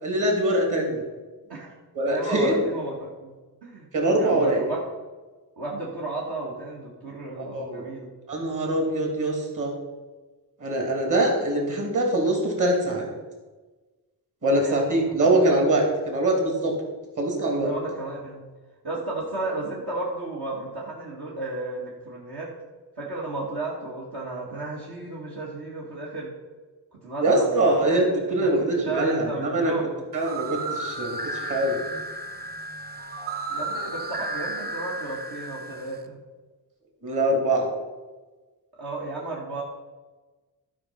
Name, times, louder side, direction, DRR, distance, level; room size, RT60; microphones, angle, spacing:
voice 1, 0.0-1.0 1.9-2.5 3.9-4.6 7.4-7.9 8.3-9.7 10.6-13.1 14.4-16.7 17.2-17.7 27.2-29.7 30.1-31.8 37.0-37.7, right 1 dB, 50° right, 1 dB, 2.9 m, -23 dB
voice 2, 2.0-3.4 3.6-3.9 4.2-4.8 5.6-8.0 14.5-15.1 17.6-18.5 18.8-22.5 23.0-26.3 26.9-30.0 33.5-36.2 38.8-39.6, right 2 dB, 70° right, -5 dB, 2.2 m, -33 dB
sound 1, 30.1-35.9, right 2 dB, 25° right, 0.9 m, -33 dB
11.0 x 5.4 x 5.8 m, 1.3 s
cardioid pair, 75°, 40 cm